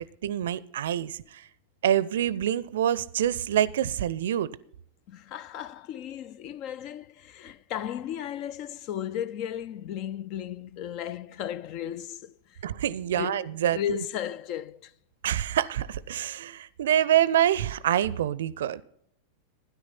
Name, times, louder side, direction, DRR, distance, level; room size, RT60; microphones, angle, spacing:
voice 1, 0.2-1.5 1.8-4.6 12.6-13.8 15.2-18.8, right 11 dB, 60° right, 0.5 m, -26 dB
voice 2, 5.1-12.6 13.2-14.9, left 10 dB, 40° left, 0.5 m, -35 dB
12.5 x 10.5 x 5.7 m
figure-of-eight pair, 90°, 0 cm